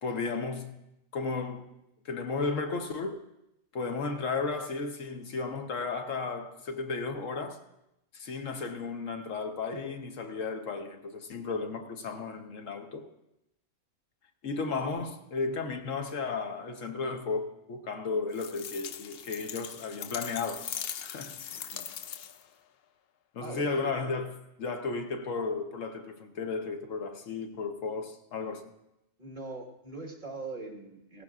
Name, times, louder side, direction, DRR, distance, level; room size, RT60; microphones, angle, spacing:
voice 1, 0.0-0.7 1.1-1.7 2.0-3.2 3.7-7.6 8.1-13.1 14.4-20.7 21.0-21.5 23.3-28.7, left 4 dB, 80° left, 1.4 m, -34 dB
sound 1, 18.3-22.5, left 9 dB, 60° left, 0.7 m, -40 dB
voice 2, 21.5-21.9 23.4-24.1 29.2-31.2, right 3 dB, 35° right, 1.8 m, -42 dB
17.5 x 15.0 x 2.4 m
omnidirectional pair, 1.3 m